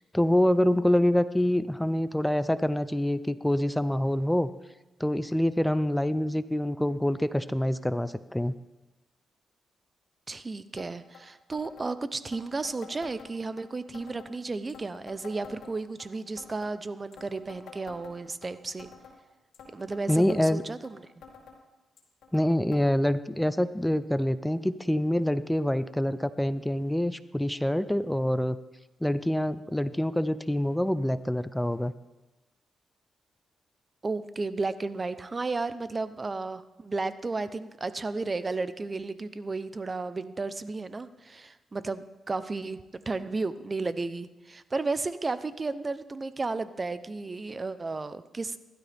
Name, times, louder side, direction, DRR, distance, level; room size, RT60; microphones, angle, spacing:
voice 1, 0.1-4.5 5.0-8.5 20.1-20.6 22.3-28.6 29.0-31.9, left 1 dB, 5° left, 14 dB, 0.5 m, -26 dB
voice 2, 10.3-18.9 19.7-21.0 34.0-42.8 43.1-48.6, right 3 dB, 30° right, 13 dB, 0.7 m, -33 dB
sound 1, 10.8-10.9 11.1-11.2 11.5-11.9 12.3-13.6 13.9-14.3 14.7-16.1 16.4-16.7 17.1-18.5 18.8-19.2 19.5-20.9 21.2-21.6 22.0-22.5 22.7-22.8 23.1-23.2 24.0-24.1 24.8-24.9, left 5 dB, 80° left, 2.3 m, -48 dB
15.5 x 12.0 x 3.5 m, 1.1 s
cardioid pair, 80°, 0 cm